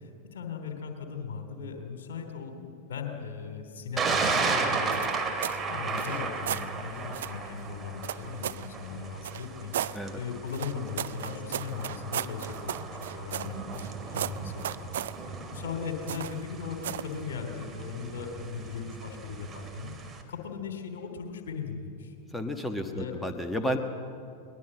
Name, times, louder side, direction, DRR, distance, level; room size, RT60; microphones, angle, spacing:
voice 1, 0.0-5.1 5.7-22.1 22.9-23.2, left 6 dB, 60° left, 5 dB, 3.2 m, -38 dB
Thunder, 4.0-20.2, right 4 dB, 20° right, 2.7 m, -35 dB
sound 1, 4.9-5.6 5.9-6.7 7.1-7.4 8.0-8.7 9.2-10.0 10.5-13.9 14.1-15.2 16.1-16.4 16.8-17.1, right 11 dB, 60° right, 0.5 m, -35 dB
voice 2, 22.3-23.8, equal, 5° left, 6 dB, 1.4 m, -32 dB
21.5 x 20.5 x 7.7 m, 2.4 s
figure-of-eight pair, 90°, 0 cm